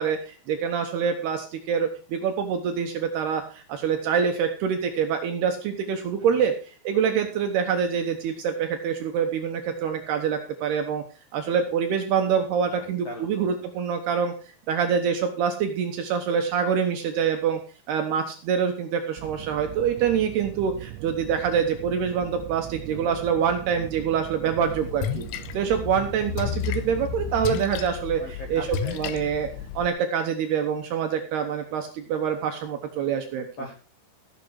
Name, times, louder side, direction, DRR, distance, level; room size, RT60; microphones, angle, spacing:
voice 1, 0.0-11.0 11.3-14.3 14.7-17.6 17.9-25.3 25.5-28.2 28.5-29.5 29.8-33.5, right 7 dB, 70° right, 5 dB, 2.6 m, -25 dB
voice 2, 12.7-13.5 22.9-23.3 28.2-29.0 33.6-33.7, left 1 dB, 65° left, 2 dB, 1.6 m, -39 dB
sound 1, 19.2-27.6, right 14 dB, 90° right, 3.4 m, -40 dB
Splash splatter, 24.6-29.9, left 9 dB, 85° left, 3.3 m, -32 dB
15.5 x 7.5 x 4.7 m, 0.36 s
omnidirectional pair, 5.8 m